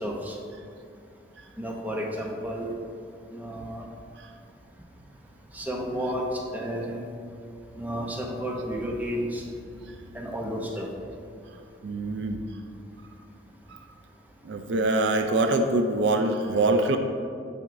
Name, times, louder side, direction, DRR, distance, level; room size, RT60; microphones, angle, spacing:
voice 1, 0.0-0.3 1.6-2.7 3.3-3.8 5.5-7.1 7.8-9.4 10.1-10.8, equal, 10° right, -1 dB, 0.6 m, -31 dB
voice 2, 11.8-12.4 14.4-17.0, right 2 dB, 65° right, 6 dB, 0.4 m, -24 dB
7.3 x 5.8 x 2.6 m, 2.4 s
head